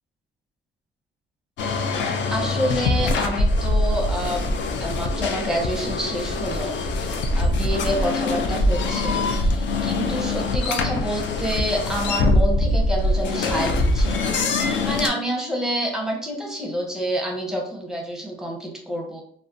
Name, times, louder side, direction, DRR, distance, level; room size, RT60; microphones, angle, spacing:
sound 1, 1.6-15.1, left 2 dB, 65° left, 0.4 m, -23 dB
voice 1, 2.3-4.5 4.8-14.4 14.8-19.2, equal, 5° right, -1 dB, 0.8 m, -28 dB
2.3 x 2.2 x 2.6 m, 0.64 s
cardioid pair, 90°, 20 cm